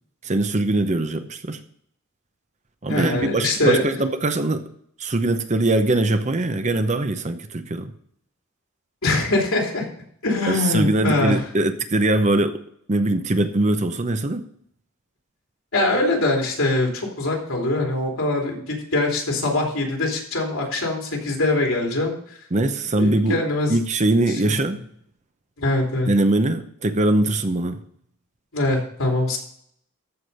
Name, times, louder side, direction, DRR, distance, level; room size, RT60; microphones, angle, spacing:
voice 1, 0.2-1.6 2.8-4.7 5.0-7.9 10.5-12.6 12.9-14.4 22.5-23.4 23.7-24.8 26.1-27.8, right 2 dB, 35° right, 9 dB, 0.8 m, -21 dB
voice 2, 2.9-3.9 9.0-9.8 10.2-11.4 15.7-22.1 23.0-23.7 24.3-24.6 25.6-26.1 28.5-29.4, left 2 dB, 75° left, -1 dB, 3.3 m, -23 dB
14.0 x 4.9 x 5.4 m, 0.65 s
head